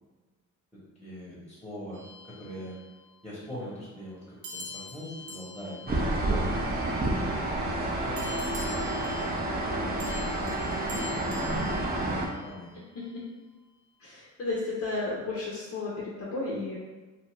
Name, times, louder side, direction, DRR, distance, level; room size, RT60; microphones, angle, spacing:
voice 1, 0.7-2.8 3.2-6.6 7.0-11.9 12.3-12.7, equal, 5° left, -9 dB, 1.0 m, -42 dB
sound 1, 1.9-3.2 4.4-7.1 8.2-12.7, left 2 dB, 80° right, 0.7 m, -45 dB
sound 2, 5.9-12.3, right 1 dB, 30° right, 0.5 m, -29 dB
voice 2, 14.0-16.8, left 3 dB, 45° left, -5 dB, 0.7 m, -33 dB
2.7 x 2.4 x 3.1 m, 1.3 s
cardioid pair, 105°, 32 cm